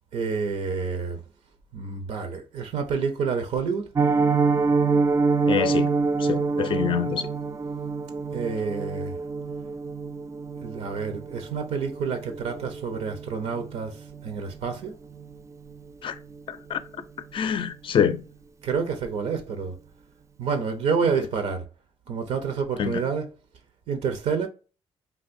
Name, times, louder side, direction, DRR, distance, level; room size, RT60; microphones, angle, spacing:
voice 1, 0.1-1.2 1.7-3.9 8.3-9.2 10.6-14.0 14.2-14.9 18.6-19.7 20.4-21.6 22.1-23.3 23.9-24.5, right 5 dB, 80° right, 0.6 m, -28 dB
Piano, 3.9-14.8 15.1-15.3 15.7-15.8 16.2-16.4 16.7-16.8, right 4 dB, 30° right, 0.3 m, -26 dB
voice 2, 5.5-5.9 6.2-7.3 16.0-16.2 16.5-16.8 17.3-18.2 22.8-23.0, left 8 dB, 50° left, 0.4 m, -25 dB
3.4 x 2.5 x 2.5 m
cardioid pair, 80°, 11 cm